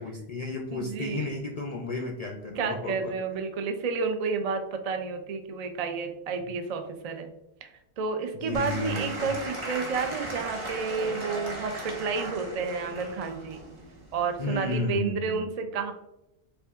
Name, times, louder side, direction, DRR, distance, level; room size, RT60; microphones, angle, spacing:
voice 1, 0.0-3.1 8.4-9.3 14.4-15.5, left 2 dB, 60° left, 0 dB, 0.4 m, -33 dB
voice 2, 0.7-1.3 2.6-7.3 7.6-13.6 14.1-15.9, right 5 dB, 60° right, 6 dB, 0.4 m, -31 dB
Applause / Crowd, 8.5-14.8, right 1 dB, 30° right, 0.8 m, -37 dB
4.9 x 2.5 x 2.4 m, 0.89 s
omnidirectional pair, 1.1 m